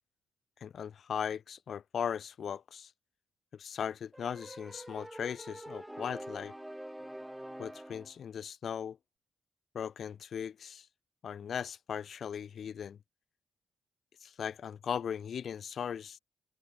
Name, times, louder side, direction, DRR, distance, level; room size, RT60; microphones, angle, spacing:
voice 1, 0.6-2.9 3.5-6.5 7.6-9.0 9.7-10.9 11.2-13.0 14.2-16.2, left 8 dB, 60° left, 0.3 m, -38 dB
sound 1, 4.1-8.2, right 1 dB, 5° right, 0.8 m, -45 dB
hypercardioid pair, 45°, 0 cm